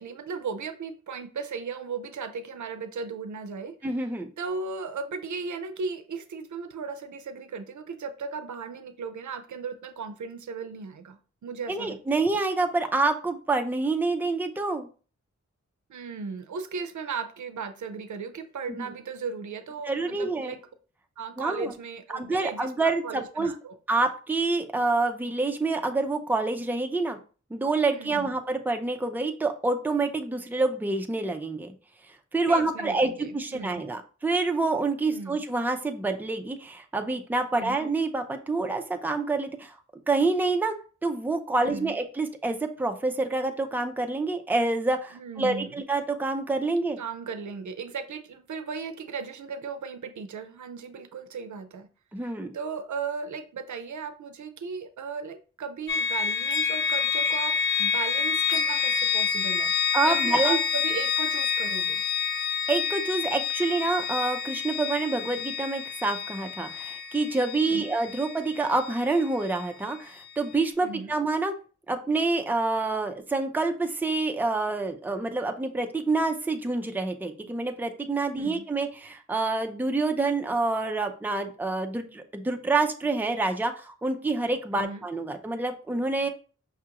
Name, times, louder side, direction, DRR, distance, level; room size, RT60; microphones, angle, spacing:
voice 1, 0.0-4.1 4.4-12.0 15.9-20.6 21.2-23.8 27.9-28.3 32.5-33.8 35.1-35.4 37.5-37.8 41.6-42.0 45.1-45.8 47.0-51.9 52.2-59.7 60.0-62.0 67.6-68.0 70.8-71.1 78.3-78.7 84.7-85.0, right 5 dB, 75° right, 8 dB, 0.5 m, -36 dB
voice 2, 3.8-4.3 11.7-14.9 18.7-18.9 19.8-20.5 21.4-21.7 22.1-23.5 23.9-27.2 27.5-31.7 32.3-39.8 40.1-40.7 41.0-47.0 52.1-52.5 59.9-60.6 62.7-71.5 71.9-86.3, right 3 dB, 5° right, 5 dB, 0.5 m, -27 dB
sound 1, 55.9-69.7, left 7 dB, 40° left, 0.9 m, -28 dB
5.6 x 2.4 x 2.9 m, 0.37 s
wide cardioid pair, 85°, 30 cm